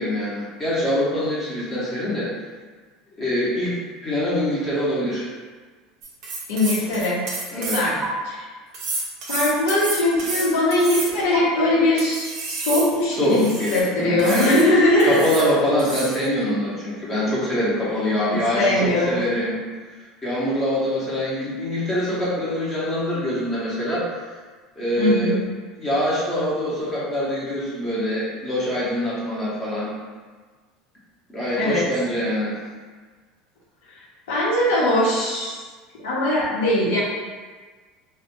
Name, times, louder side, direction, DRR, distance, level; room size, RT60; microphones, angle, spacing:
voice 1, 0.0-2.3 3.2-5.3 7.5-7.8 13.1-14.5 15.0-19.5 20.2-24.3 24.8-25.3 25.8-29.9 31.3-32.5, equal, 20° left, -8 dB, 0.8 m, -24 dB
sound 1, 6.0-8.1 8.7-11.4 12.0-13.9 14.2-14.7 15.0-15.5 15.8-16.2, right 3 dB, 45° right, 0.6 m, -30 dB
voice 2, 6.5-7.2 7.6-8.0 8.2-8.4 9.3-15.3 18.5-19.3 25.0-25.4 31.6-31.8 34.3-35.6 36.0-37.0, left 1 dB, 85° left, -6 dB, 0.8 m, -20 dB
3.2 x 2.1 x 3.0 m, 1.4 s
cardioid pair, 150°, 0 cm